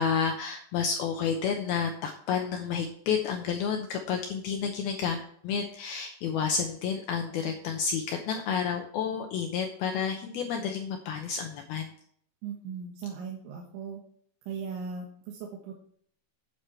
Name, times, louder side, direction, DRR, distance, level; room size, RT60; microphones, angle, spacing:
voice 1, 0.0-5.2 5.4-11.9, left 6 dB, 85° left, 3 dB, 2.2 m, -30 dB
voice 2, 12.4-14.0 14.5-15.8, right 6 dB, 75° right, -1 dB, 3.7 m, -38 dB
10.0 x 9.2 x 4.5 m, 0.62 s
omnidirectional pair, 5.5 m